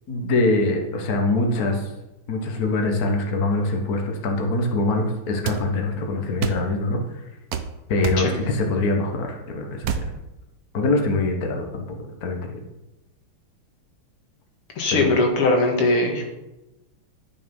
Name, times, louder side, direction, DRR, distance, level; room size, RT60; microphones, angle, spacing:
voice 1, 0.1-1.9 2.3-7.0 7.9-9.9 10.7-11.9 12.2-12.6 14.9-15.2, left 2 dB, 45° left, 2 dB, 1.7 m, -23 dB
sound 1, 5.4-5.6 6.4-6.6 7.5-7.7 8.0-8.3 9.8-10.1, right 7 dB, 60° right, 1.0 m, -25 dB
voice 2, 14.8-16.2, left 2 dB, 85° left, 1 dB, 2.7 m, -20 dB
11.5 x 6.7 x 5.5 m, 0.98 s
omnidirectional pair, 2.4 m